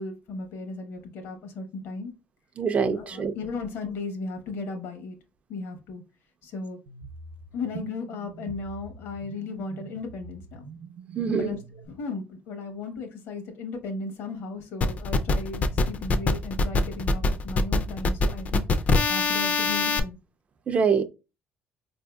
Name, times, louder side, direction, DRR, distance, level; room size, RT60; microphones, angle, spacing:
voice 1, 0.0-2.1 3.0-5.2 5.5-6.0 6.4-6.8 7.5-10.6 11.3-20.2, left 3 dB, 75° left, 0.9 m, -36 dB
voice 2, 2.6-3.3 11.1-11.6 20.7-21.0, right 6 dB, 35° right, 0.3 m, -24 dB
sound 1, 6.9-11.9, right 4 dB, 85° right, 0.5 m, -44 dB
sound 2, 14.8-20.0, left 3 dB, 40° left, 0.4 m, -23 dB
4.5 x 2.6 x 2.2 m
cardioid pair, 125°, 4 cm